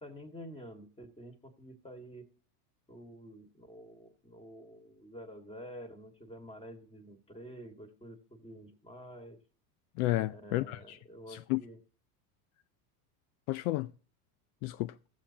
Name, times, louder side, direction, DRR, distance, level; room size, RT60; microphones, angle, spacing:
voice 1, 0.0-2.3 2.9-9.4 10.3-11.8, equal, 10° left, 2.0 m, -49 dB
voice 2, 10.0-11.0 11.3-11.6 13.5-13.9 14.6-14.9, left 18 dB, 65° left, 0.5 m, -32 dB
15.0 x 7.3 x 2.9 m
supercardioid pair, 115°, 46 cm